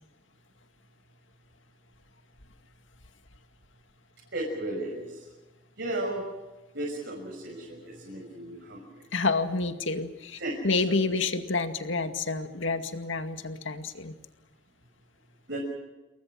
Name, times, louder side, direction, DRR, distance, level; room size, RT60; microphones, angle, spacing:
voice 1, 4.3-5.2 5.8-6.2 6.7-9.0 10.4-11.1 15.5-15.6, right 1 dB, 65° right, -2 dB, 6.4 m, -35 dB
voice 2, 9.1-14.2, left 3 dB, 75° left, 7 dB, 2.2 m, -29 dB
29.0 x 22.0 x 6.3 m, 1.2 s
head